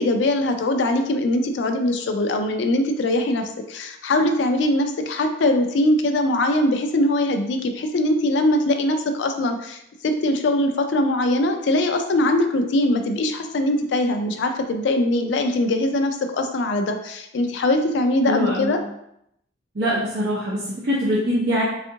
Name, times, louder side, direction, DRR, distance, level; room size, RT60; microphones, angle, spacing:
voice 1, 0.0-18.8, left 1 dB, 65° left, 6 dB, 0.4 m, -21 dB
voice 2, 18.2-18.7 19.7-21.6, equal, 60° right, -7 dB, 0.6 m, -23 dB
3.5 x 2.4 x 2.7 m, 0.77 s
head